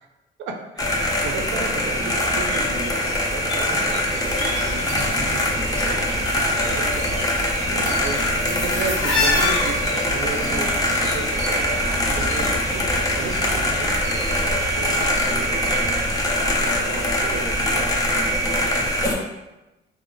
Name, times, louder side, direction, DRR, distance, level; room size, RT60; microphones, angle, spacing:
voice 1, 0.4-4.3 4.6-15.9 16.4-17.9 18.1-18.3, right 5 dB, 70° right, 3 dB, 0.5 m, -34 dB
sound 1, 0.8-19.2, left 1 dB, 20° left, 0.5 m, -23 dB
sound 2, 2.3-5.0 5.3-6.3 6.5-12.5 12.8-15.8 16.1-16.2, left 3 dB, 75° left, 0.8 m, -31 dB
sound 3, 4.2-14.8, equal, 40° left, 0.9 m, -34 dB
2.8 x 2.1 x 2.5 m, 1.0 s
cardioid pair, 90°, 20 cm